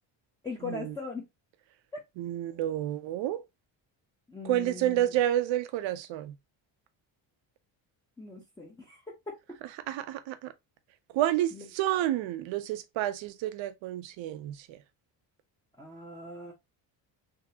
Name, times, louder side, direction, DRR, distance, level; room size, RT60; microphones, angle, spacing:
voice 1, 0.4-1.3 1.9-2.0 4.3-5.1 8.2-9.3 11.5-11.7 15.8-16.5, left 3 dB, 10° left, 0.8 m, -40 dB
voice 2, 2.2-3.4 4.4-6.4 9.9-10.5 11.1-14.7, right 13 dB, 80° right, 0.7 m, -30 dB
3.7 x 2.9 x 2.7 m
cardioid pair, 110°, 45 cm